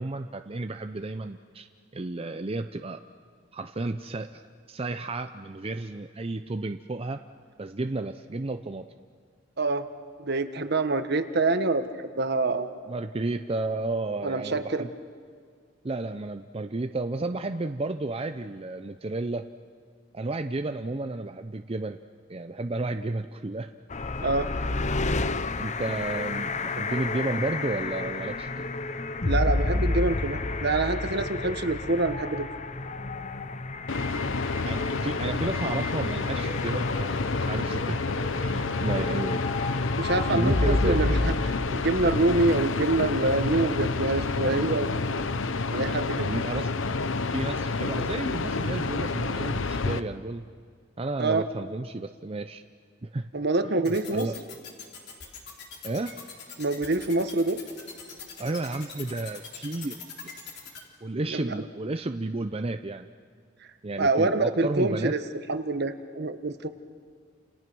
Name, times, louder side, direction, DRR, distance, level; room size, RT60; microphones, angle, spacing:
voice 1, 0.0-1.7 1.9-3.0 3.5-4.4 4.7-7.2 7.6-8.9 12.9-14.9 15.8-19.5 20.1-22.0 22.3-23.7 25.6-28.6 34.6-38.0 38.4-39.4 40.3-41.1 46.2-46.7 47.3-50.5 51.0-52.6 53.0-53.3 53.7-54.3 55.8-56.2 58.4-60.3 61.0-63.1 63.8-65.1, right 2 dB, 30° right, 7 dB, 0.6 m, -32 dB
voice 2, 10.2-12.7 14.2-14.9 24.2-24.5 29.2-32.5 40.0-44.9 45.7-46.3 51.2-51.4 53.3-54.3 56.6-57.6 61.3-61.5 64.0-66.7, right 2 dB, 55° right, 9 dB, 1.3 m, -26 dB
sound 1, 23.9-41.7, left 2 dB, 40° left, 0.8 m, -30 dB
sound 2, 33.9-50.0, left 3 dB, 75° left, 0.9 m, -29 dB
sound 3, 53.8-60.8, left 6 dB, 60° left, 3.6 m, -42 dB
29.5 x 28.0 x 6.2 m, 2.1 s
head